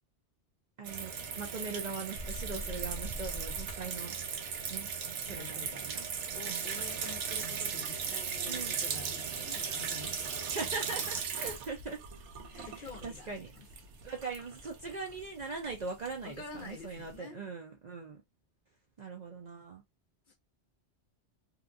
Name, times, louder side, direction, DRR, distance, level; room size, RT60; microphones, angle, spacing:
voice 1, 0.8-4.2 4.7-4.9 5.2-6.0 6.5-6.6 8.5-8.8 10.5-12.0 12.5-12.7 13.0-13.5 14.0-18.2 19.0-19.8, right 4 dB, 50° right, 0.5 m, -40 dB
sound 1, 0.8-17.2, right 6 dB, 75° right, 0.9 m, -38 dB
sound 2, 2.2-3.9, equal, 25° right, 0.9 m, -41 dB
voice 2, 2.5-2.8 5.2-5.8 6.3-10.7 12.5-13.7 16.2-17.4 20.3-20.4, left 5 dB, 55° left, 0.7 m, -49 dB
2.8 x 2.3 x 2.5 m
omnidirectional pair, 1.2 m